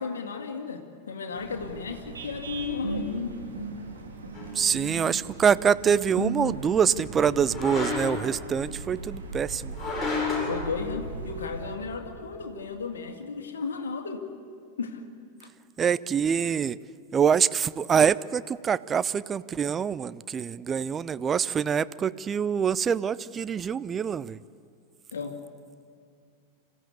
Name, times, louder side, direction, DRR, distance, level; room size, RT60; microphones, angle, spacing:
voice 1, 0.0-3.4 10.4-14.2 14.8-15.0 15.4-15.5 25.1-25.4, left 5 dB, 65° left, 4 dB, 2.1 m, -34 dB
sound 1, 1.3-11.8, right 2 dB, 75° right, 3.1 m, -37 dB
sound 2, 4.3-4.5 7.5-8.3 9.7-10.6, left 4 dB, 10° left, 7.4 m, -30 dB
voice 2, 4.5-9.7 15.8-16.8 17.1-24.4, right 7 dB, 20° right, 17 dB, 0.4 m, -25 dB
26.5 x 15.0 x 8.3 m, 2.3 s
figure-of-eight pair, 90°, 0 cm